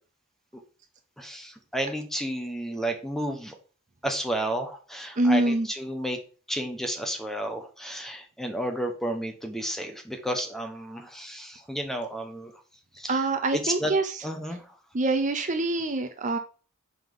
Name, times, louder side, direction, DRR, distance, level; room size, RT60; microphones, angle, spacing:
voice 1, 1.2-3.5 4.0-6.2 6.5-12.5 13.0-13.2 13.5-13.9 14.2-14.7, right 1 dB, ahead, 4 dB, 0.9 m, -32 dB
voice 2, 5.2-5.7 13.1-14.2 14.9-16.4, right 2 dB, 35° right, 8 dB, 0.6 m, -25 dB
5.6 x 5.4 x 3.8 m, 0.38 s
head